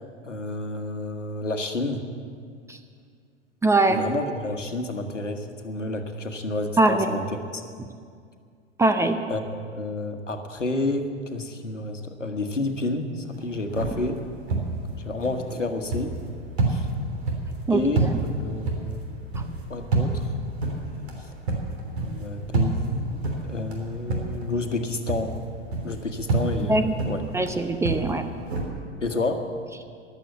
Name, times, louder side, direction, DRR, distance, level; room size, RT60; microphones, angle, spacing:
voice 1, 0.2-2.0 3.9-7.2 7.5-7.6 9.3-14.2 15.0-16.2 16.7-16.9 17.7-18.0 18.4-19.0 19.7-20.3 22.0-25.4 25.8-27.2 29.0-29.5, left 2 dB, 80° left, 6 dB, 1.4 m, -30 dB
voice 2, 3.6-4.0 6.8-7.1 8.8-9.2 17.7-17.8 26.7-26.9 27.3-28.2, right 2 dB, 10° right, 8 dB, 0.6 m, -21 dB
sound 1, 13.3-24.8 25.1-28.6, right 2 dB, 60° right, 3.3 m, -29 dB
14.0 x 11.5 x 8.1 m, 2.2 s
figure-of-eight pair, 95°, 36 cm